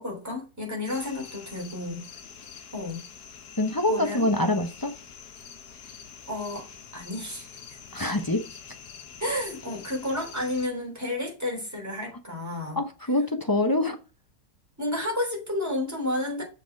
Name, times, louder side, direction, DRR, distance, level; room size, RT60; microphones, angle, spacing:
voice 1, 0.0-2.0 2.7-3.0 3.9-4.3 6.3-6.7 6.9-7.8 9.2-12.8 14.8-16.4, left 1 dB, 10° right, 3.1 m, -31 dB
sound 1, 0.9-10.7, left 7 dB, 70° left, 1.6 m, -46 dB
voice 2, 3.6-4.9 7.9-8.4 12.8-14.0, left 1 dB, 25° left, 0.5 m, -25 dB
6.7 x 4.9 x 4.6 m
omnidirectional pair, 1.8 m